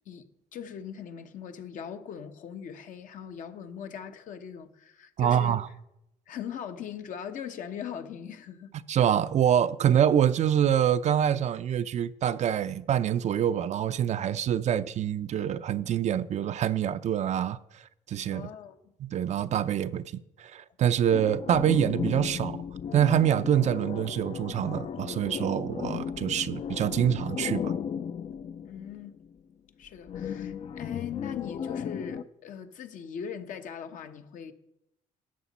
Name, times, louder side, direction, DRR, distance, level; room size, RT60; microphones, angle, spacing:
voice 1, 0.1-5.6 6.3-8.7 18.3-18.9 28.6-29.2 29.8-34.5, left 8 dB, 65° left, 1.0 m, -40 dB
voice 2, 5.2-5.6 8.9-17.6 18.1-18.5 19.0-20.0 20.4-22.6 22.9-27.7, right 9 dB, 55° right, 0.5 m, -25 dB
sound 1, 21.1-29.3 30.1-32.2, left 8 dB, 45° left, 0.5 m, -35 dB
12.5 x 8.3 x 4.1 m
supercardioid pair, 75°, 14 cm